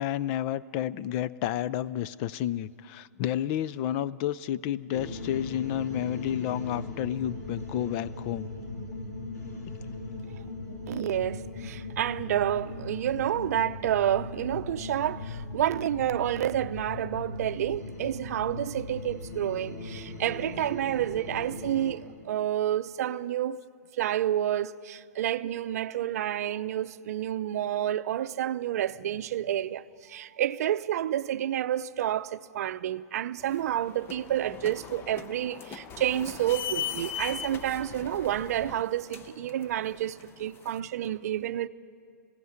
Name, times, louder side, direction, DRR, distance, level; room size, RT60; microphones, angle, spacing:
voice 1, 0.0-8.5 9.7-9.8, left 11 dB, 40° left, 0.5 m, -31 dB
sound 1, 4.9-21.9, left 2 dB, 75° left, 5.9 m, -39 dB
voice 2, 10.9-23.6 24.0-41.7, right 11 dB, 65° right, 0.6 m, -29 dB
sound 2, 33.4-40.8, left 8 dB, 25° left, 0.9 m, -40 dB
20.0 x 16.0 x 9.5 m
hypercardioid pair, 130°, 9 cm